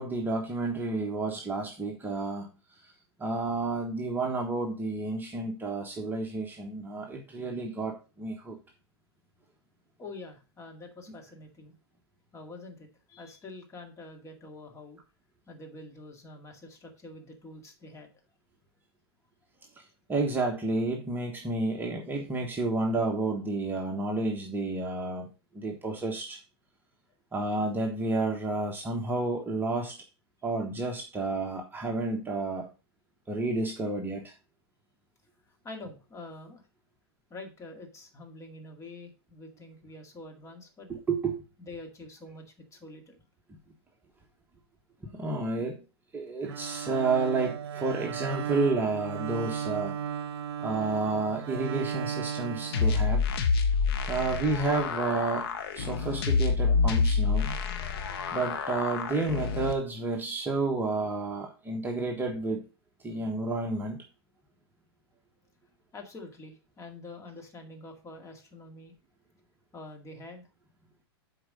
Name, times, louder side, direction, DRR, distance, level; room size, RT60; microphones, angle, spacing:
voice 1, 0.0-2.5 3.2-8.6 20.1-25.3 25.5-26.4 27.3-30.0 30.4-32.7 33.3-34.3 41.1-41.4 45.1-45.8 46.1-50.0 50.6-53.2 54.1-55.5 55.7-57.6 58.3-62.6 63.0-64.0, right 3 dB, 15° right, 1 dB, 1.3 m, -30 dB
voice 2, 10.0-11.7 12.3-15.0 15.5-18.1 35.6-36.6 37.3-40.9 41.6-43.2 62.3-62.4 65.9-68.9 69.7-70.5, left 2 dB, 20° left, 3 dB, 2.1 m, -46 dB
Bowed string instrument, 46.4-53.6, right 8 dB, 70° right, 0.7 m, -36 dB
sound 1, 52.7-59.7, left 5 dB, 70° left, 1.3 m, -27 dB
7.8 x 4.7 x 5.3 m, 0.32 s
hypercardioid pair, 115°, 13 cm